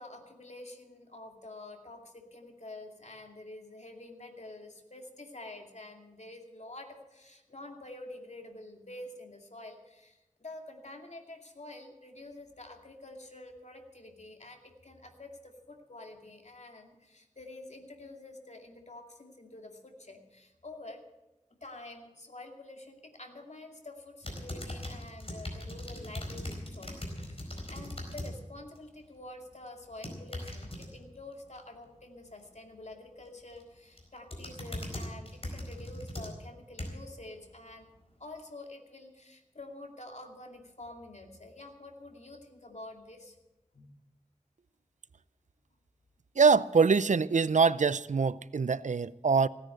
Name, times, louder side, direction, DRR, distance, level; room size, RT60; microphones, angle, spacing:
voice 1, 0.0-21.0 21.6-37.9 38.2-43.4 43.7-43.9, left 2 dB, 65° left, 2.4 m, -48 dB
sound 1, 24.2-28.3 28.7-29.1 29.8-30.9 33.3-33.6 34.0-37.1 37.7-37.8, left 1 dB, 50° left, 4.4 m, -40 dB
voice 2, 46.4-49.5, right 5 dB, 75° right, 0.4 m, -24 dB
16.5 x 9.7 x 7.8 m
wide cardioid pair, 55°, 13 cm